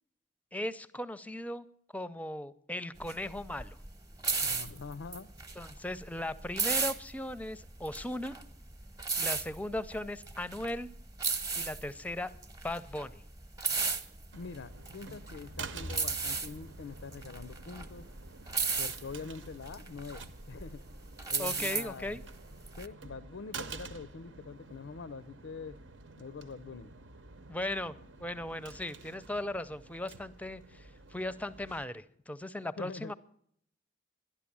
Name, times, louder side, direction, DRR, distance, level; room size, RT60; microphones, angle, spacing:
voice 1, 0.5-1.7 1.9-3.8 5.6-8.3 9.2-10.9 11.6-12.3 12.6-13.2 21.4-22.2 27.5-33.1, left 1 dB, 10° left, 15 dB, 0.5 m, -37 dB
sound 1, 3.0-22.9, right 4 dB, 20° right, 0.8 m, -35 dB
voice 2, 4.4-5.3 14.3-18.1 18.8-20.8 21.3-22.2 22.8-25.8 26.2-26.9 32.8-33.1, left 4 dB, 90° left, 14 dB, 0.5 m, -44 dB
sound 2, 14.3-31.9, right 4 dB, 85° right, 0.9 m, -49 dB
12.0 x 11.5 x 8.5 m, 0.68 s
head